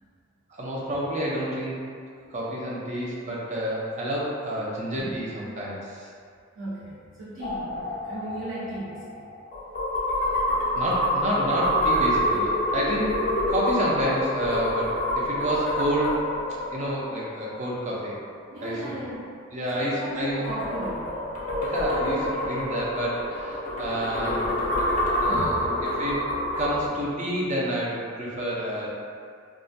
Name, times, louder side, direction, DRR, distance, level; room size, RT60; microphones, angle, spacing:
voice 1, 0.5-1.8 2.3-6.1 10.7-16.2 16.7-18.2 18.6-18.9 19.5-20.5 21.6-24.4 24.7-25.5 25.8-26.3 26.6-28.9, equal, 35° right, -5 dB, 0.4 m, -29 dB
voice 2, 6.5-9.3 18.5-19.3 19.7-21.2 25.3-25.7, right 1 dB, 65° right, -12 dB, 0.8 m, -36 dB
sound 1, 7.4-18.0 20.0-26.9, left 1 dB, 40° left, 0.4 m, -27 dB
2.3 x 2.1 x 2.6 m, 2.2 s
head